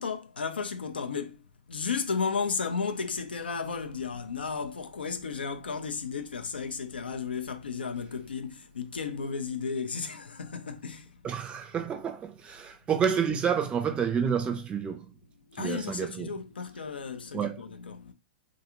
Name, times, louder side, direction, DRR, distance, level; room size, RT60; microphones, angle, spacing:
voice 1, 0.0-11.2 15.5-18.1, left 5 dB, 85° left, 0.4 m, -34 dB
voice 2, 11.2-15.1 15.6-16.3 17.3-17.6, right 7 dB, 20° right, 0.5 m, -29 dB
2.4 x 2.3 x 2.8 m
hypercardioid pair, 115°, 5 cm